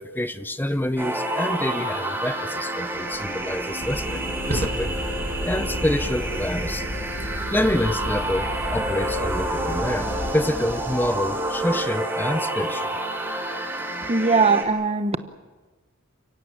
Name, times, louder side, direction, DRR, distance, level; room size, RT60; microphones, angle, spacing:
voice 1, 0.0-4.9 5.4-6.9 7.5-12.9, left 1 dB, 10° left, 11 dB, 0.7 m, -27 dB
sound 1, 1.0-14.6, right 1 dB, 10° right, 4.5 m, -29 dB
Fire, 2.9-11.9, right 1 dB, 75° right, 2.0 m, -36 dB
sound 2, 3.8-10.3, left 1 dB, 40° left, 1.0 m, -34 dB
voice 2, 14.1-15.2, right 4 dB, 30° right, 11 dB, 1.1 m, -20 dB
30.0 x 16.5 x 8.9 m, 1.3 s
head